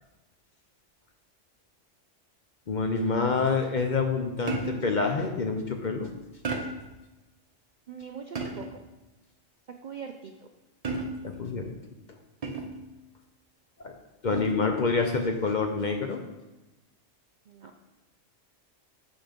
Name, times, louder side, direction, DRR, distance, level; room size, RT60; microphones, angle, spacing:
voice 1, 2.7-6.1 11.2-11.7 13.8-13.9 14.2-16.2, left 4 dB, 45° left, 4 dB, 0.7 m, -27 dB
sound 1, 4.5-5.0 6.4-7.0 8.3-8.9 10.8-11.4 12.4-12.9 14.3-14.7, right 3 dB, 35° right, 0.8 m, -34 dB
voice 2, 7.9-8.8 9.8-10.5 17.5-17.7, right 6 dB, 60° right, 4 dB, 0.5 m, -42 dB
6.5 x 5.8 x 5.1 m, 1.0 s
omnidirectional pair, 1.3 m